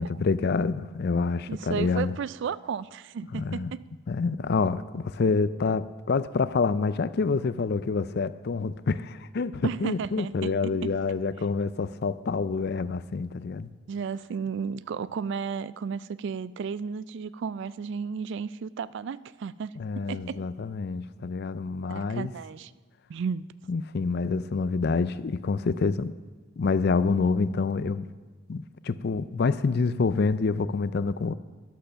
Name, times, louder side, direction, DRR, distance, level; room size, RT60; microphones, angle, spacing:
voice 1, 0.0-2.1 3.3-3.7 4.1-13.7 19.8-22.3 23.7-26.1 26.6-28.1 28.5-31.3, left 4 dB, 50° left, 15 dB, 0.4 m, -27 dB
voice 2, 1.5-3.8 9.6-10.9 13.9-20.4 21.9-22.7 23.1-23.4, right 6 dB, 55° right, 18 dB, 0.3 m, -33 dB
13.5 x 10.0 x 5.7 m, 1.3 s
head